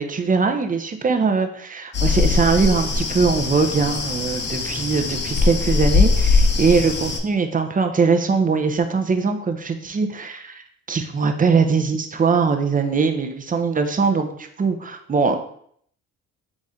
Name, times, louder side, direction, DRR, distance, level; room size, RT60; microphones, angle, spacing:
voice 1, 0.0-15.4, right 5 dB, 30° right, 7 dB, 0.6 m, -21 dB
sound 1, 1.9-7.2, left 4 dB, 35° left, 0.7 m, -21 dB
4.1 x 3.2 x 3.6 m, 0.64 s
cardioid pair, 90°, 30 cm